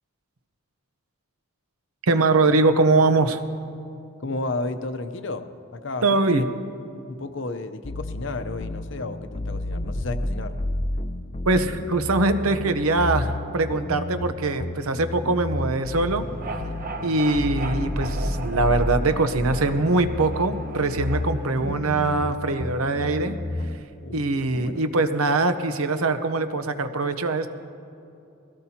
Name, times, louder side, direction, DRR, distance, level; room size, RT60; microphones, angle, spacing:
voice 1, 2.1-3.4 6.0-6.5 11.5-16.3 17.0-23.4 24.1-27.5, right 3 dB, 90° right, 10 dB, 0.8 m, -22 dB
voice 2, 4.2-5.5 5.7-6.4 7.1-10.5 24.0-24.2 24.5-24.8, left 2 dB, 60° left, 10 dB, 0.7 m, -32 dB
sound 1, 7.8-23.8, left 1 dB, 30° left, 0.4 m, -31 dB
sound 2, 16.1-22.2, right 2 dB, 40° right, 0.9 m, -37 dB
22.0 x 16.5 x 2.9 m, 2.7 s
head